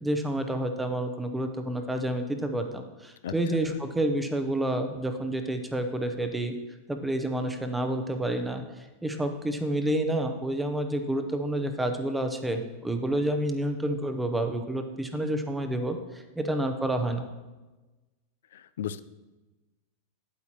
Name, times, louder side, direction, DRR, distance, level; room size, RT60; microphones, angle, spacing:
voice 1, 0.0-6.5 6.9-8.6 9.0-17.2, right 1 dB, 5° right, 6 dB, 0.7 m, -29 dB
voice 2, 18.5-19.0, left 9 dB, 85° left, 14 dB, 0.3 m, -35 dB
8.3 x 8.2 x 3.0 m, 1.2 s
supercardioid pair, 140°, 0 cm